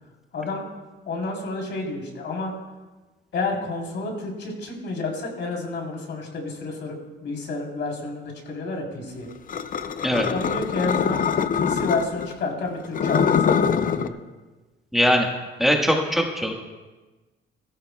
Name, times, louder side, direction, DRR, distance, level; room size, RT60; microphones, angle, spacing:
voice 1, 1.1-2.5 3.3-9.3 10.2-11.3 11.5-14.2, left 3 dB, 65° left, -1 dB, 3.7 m, -30 dB
sound 1, 9.5-12.3 12.8-14.1, left 7 dB, 45° left, 0.6 m, -23 dB
voice 2, 14.9-15.2 15.6-16.5, equal, ahead, 1 dB, 1.5 m, -20 dB
16.0 x 14.5 x 2.3 m, 1.2 s
cardioid pair, 90°, 20 cm